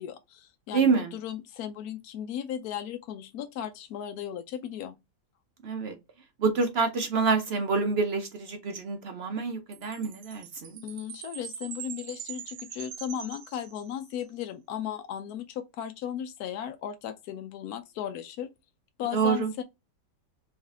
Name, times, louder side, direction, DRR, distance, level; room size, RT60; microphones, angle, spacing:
voice 1, 0.0-5.0 10.8-18.5 19.0-19.6, left 9 dB, 70° left, 0.9 m, -36 dB
voice 2, 0.7-1.1 5.6-6.0 6.4-10.8 19.1-19.5, right 5 dB, 70° right, 0.6 m, -27 dB
Chime, 9.7-14.2, right 10 dB, 90° right, 1.3 m, -43 dB
3.5 x 3.1 x 3.5 m
omnidirectional pair, 2.0 m